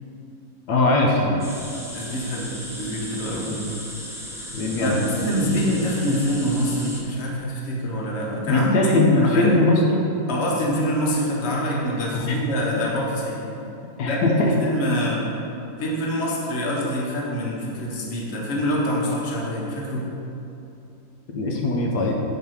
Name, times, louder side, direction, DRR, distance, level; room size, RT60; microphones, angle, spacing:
voice 1, 0.7-1.5 3.4-3.6 4.5-5.0 8.5-10.0 12.1-12.4 12.7-12.8 14.0-14.6 21.3-22.1, left 2 dB, 85° left, 0 dB, 1.3 m, -20 dB
sound 1, 1.4-7.0, equal, 5° right, 0.4 m, -36 dB
voice 2, 1.9-3.5 4.8-8.9 9.2-9.5 10.3-13.5 14.0-15.2 15.8-20.1, equal, 45° left, -3 dB, 1.2 m, -25 dB
7.7 x 3.3 x 5.6 m, 2.8 s
omnidirectional pair, 1.7 m